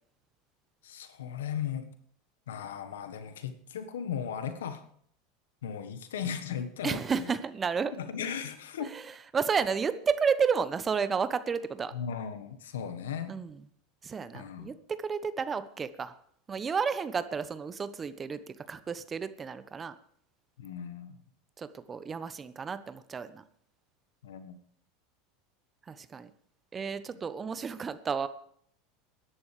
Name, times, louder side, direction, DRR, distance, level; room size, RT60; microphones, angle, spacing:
voice 1, 0.8-1.9 2.5-4.9 5.6-7.3 7.9-8.9 11.9-13.4 14.3-14.7 20.6-21.2 24.2-24.6, left 8 dB, 75° left, 9 dB, 1.4 m, -37 dB
voice 2, 6.8-7.9 8.8-11.9 13.3-13.6 14.0-14.8 15.0-16.2 16.5-19.9 21.6-23.4 25.9-26.3 26.7-28.3, right 6 dB, 25° right, 13 dB, 1.0 m, -31 dB
20.5 x 11.0 x 3.4 m, 0.64 s
hypercardioid pair, 85°, 0 cm